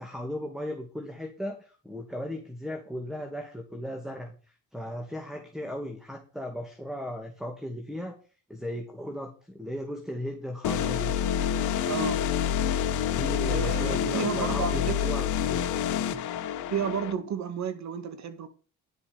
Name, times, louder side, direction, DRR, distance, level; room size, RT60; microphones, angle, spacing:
voice 1, 0.0-4.3 4.7-8.2 8.5-11.1 13.1-15.7, equal, ahead, 2.0 m, -36 dB
sound 1, 10.6-17.1, left 9 dB, 85° left, 1.1 m, -27 dB
voice 2, 11.9-12.2 13.4-14.9 16.7-18.5, right 7 dB, 65° right, 1.9 m, -32 dB
10.5 x 7.2 x 5.1 m
cardioid pair, 90°, 30 cm